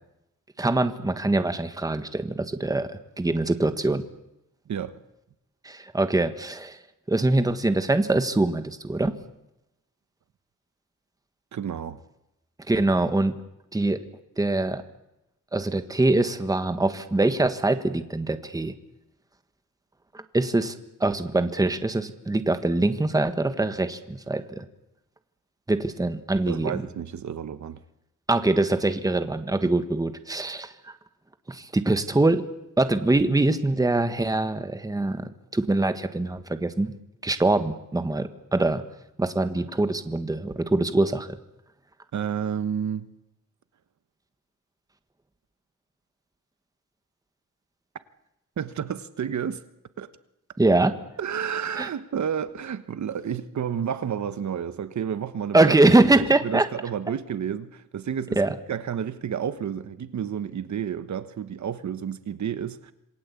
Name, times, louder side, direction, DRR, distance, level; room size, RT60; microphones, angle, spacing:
voice 1, 0.6-4.0 5.6-6.8 7.1-9.1 12.7-13.3 13.7-14.0 14.4-14.8 15.5-18.7 20.3-24.6 25.7-26.8 28.3-30.7 31.5-32.4 32.8-35.2 35.5-36.9 37.2-38.8 39.2-41.3 50.6-50.9 51.8-51.9 55.5-56.7 58.4-58.5, right 2 dB, 10° right, 1.5 m, -23 dB
voice 2, 4.7-5.0 11.5-12.0 26.5-27.8 29.6-29.7 42.1-43.1 48.6-49.6 50.0-50.1 51.2-55.7 56.1-58.4 58.7-62.9, right 8 dB, 65° right, 1.3 m, -31 dB
27.5 x 21.0 x 8.4 m
wide cardioid pair, 170°, 31 cm